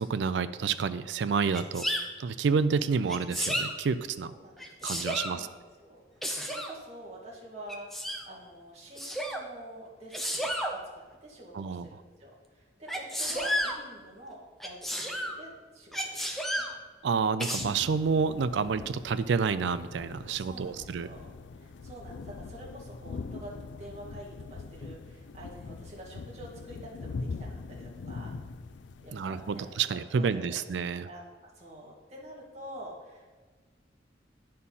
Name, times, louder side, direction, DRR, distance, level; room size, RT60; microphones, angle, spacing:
voice 1, 0.0-1.9 2.2-4.3 4.8-5.5 11.5-12.0 17.0-21.1 29.1-31.1, right 5 dB, 75° right, 13 dB, 0.4 m, -29 dB
Sneeze, 1.5-2.0 3.1-3.7 4.6-5.4 6.2-6.7 7.7-8.2 9.0-9.4 10.1-10.7 12.9-13.8 14.6-15.4 15.9-16.7 17.4-17.6, equal, ahead, 0.6 m, -32 dB
voice 2, 4.3-5.0 5.3-16.6 20.3-28.3 29.0-29.7 30.2-30.6 31.0-33.4, right 1 dB, 35° right, -5 dB, 2.1 m, -47 dB
sound 1, 17.6-29.8, left 4 dB, 80° left, 0.4 m, -42 dB
9.7 x 4.4 x 5.5 m, 1.4 s
head